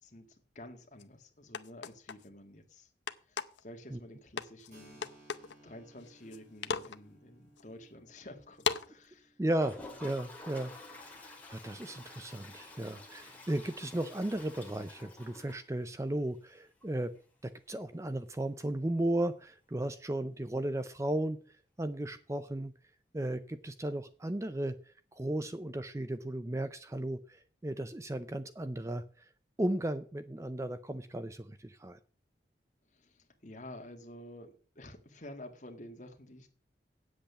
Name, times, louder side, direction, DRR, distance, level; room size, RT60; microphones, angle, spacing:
voice 1, 0.0-2.9 3.3-5.1 5.4-9.4 32.9-36.5, left 1 dB, 45° left, 1.7 m, -50 dB
sound 1, 1.0-1.1 1.5-2.3 3.1-3.6 4.4-4.7 5.0-5.5 6.0-6.4 6.6-7.0 7.6-7.7 8.6-8.9, left 6 dB, 90° left, 0.7 m, -35 dB
Keyboard (musical), 4.7-12.1, right 1 dB, 40° right, 6.5 m, -62 dB
voice 2, 9.4-10.7 11.0-17.1 17.4-21.4 21.8-22.7 23.1-24.8 25.1-29.3 29.6-32.0, right 1 dB, 15° right, 0.5 m, -35 dB
Toilet flush, 9.5-16.2 16.5-16.6 16.8-16.9 17.2-17.3 19.8-19.9 21.2-21.3, left 2 dB, 10° left, 2.0 m, -51 dB
8.7 x 7.8 x 6.9 m
head